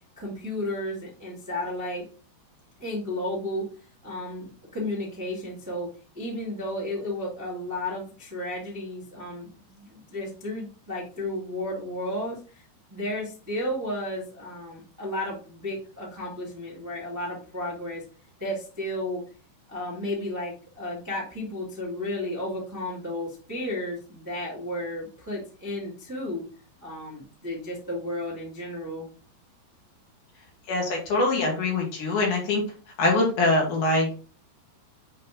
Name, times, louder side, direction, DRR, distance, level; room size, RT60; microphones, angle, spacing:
voice 1, 0.2-2.0 2.8-3.7 4.0-18.0 18.4-19.2 19.7-26.5 26.8-29.1, left 1 dB, 20° right, -4 dB, 0.4 m, -33 dB
voice 2, 30.7-32.6 33.0-34.1, left 2 dB, 60° left, 0 dB, 2.7 m, -23 dB
8.0 x 3.2 x 3.8 m, 0.37 s
omnidirectional pair, 4.8 m